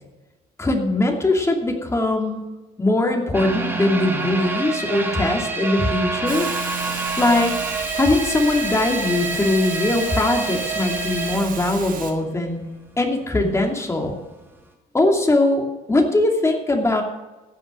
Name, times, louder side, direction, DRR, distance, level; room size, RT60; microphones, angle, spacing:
voice 1, 0.6-2.4 2.8-6.5 7.2-7.5 7.9-12.6 13.0-14.2 14.9-15.6 15.9-17.0, left 2 dB, 15° left, 2 dB, 2.6 m, -21 dB
sound 1, 3.3-12.3 12.7-12.8 13.3-13.4, right 3 dB, 15° right, 1.9 m, -27 dB
Hiss, 6.3-12.1, right 6 dB, 55° right, 2.3 m, -34 dB
15.0 x 6.5 x 6.3 m, 1.1 s
cardioid pair, 110°, 17 cm